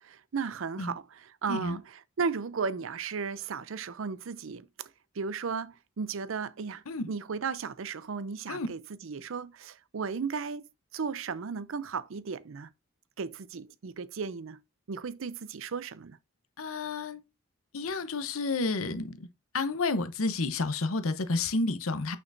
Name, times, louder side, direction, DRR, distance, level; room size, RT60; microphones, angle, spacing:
voice 1, 0.0-10.7 10.9-12.7 13.2-14.6 14.9-16.2, right 5 dB, 65° right, 0.5 m, -35 dB
voice 2, 1.5-1.8 6.9-7.1 8.5-8.7 16.6-17.2 17.7-19.3 19.5-22.2, left 3 dB, 80° left, 0.9 m, -30 dB
6.2 x 5.8 x 2.6 m
head